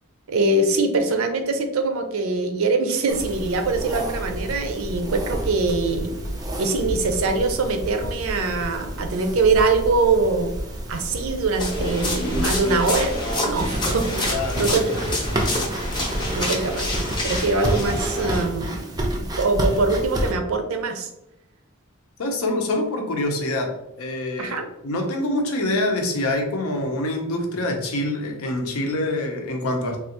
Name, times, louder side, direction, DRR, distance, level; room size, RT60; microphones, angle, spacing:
voice 1, 0.3-6.1 6.6-10.5 10.9-13.1 13.4-14.1 14.6-15.0 16.3-16.9 17.2-18.9 19.2-21.1 24.4-24.7, right 3 dB, 75° right, 6 dB, 0.5 m, -23 dB
sound 1, 3.1-20.3, right 1 dB, 20° right, 0.4 m, -30 dB
sound 2, 11.6-18.4, left 1 dB, 20° left, 0.6 m, -27 dB
voice 2, 14.3-14.7 22.2-30.0, left 1 dB, 85° left, 3 dB, 0.7 m, -25 dB
3.3 x 2.4 x 2.8 m, 0.86 s
head